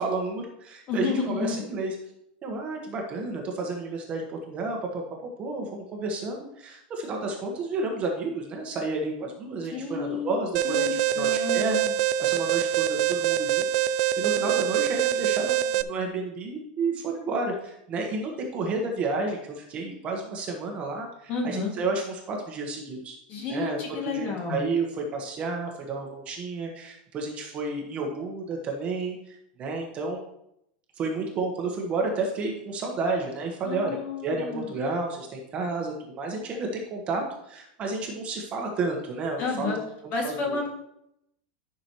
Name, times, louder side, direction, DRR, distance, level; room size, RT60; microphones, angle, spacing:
voice 1, 0.0-2.0 2.4-5.0 5.4-11.8 12.2-13.7 14.2-23.2 23.5-30.2 31.0-39.8 40.2-40.6, right 3 dB, 25° right, 1 dB, 1.3 m, -31 dB
voice 2, 0.9-1.6 9.7-10.4 10.6-11.9 21.3-21.7 23.3-24.6 33.6-34.7 39.4-39.8 40.1-40.7, left 4 dB, 35° left, 0 dB, 2.2 m, -31 dB
Alarm, 10.5-15.8, right 11 dB, 55° right, 0.4 m, -25 dB
12.5 x 6.1 x 3.1 m, 0.79 s
supercardioid pair, 165°, 5 cm